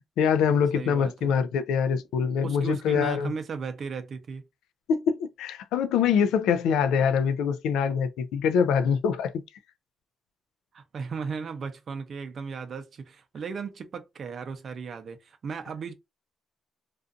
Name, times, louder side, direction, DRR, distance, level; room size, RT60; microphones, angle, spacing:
voice 1, 0.2-3.3 4.9-9.4, left 7 dB, 90° left, 0.3 m, -24 dB
voice 2, 0.7-1.3 2.4-4.4 10.7-15.9, right 5 dB, 50° right, 0.5 m, -36 dB
2.5 x 2.4 x 2.4 m
cardioid pair, 90°, 0 cm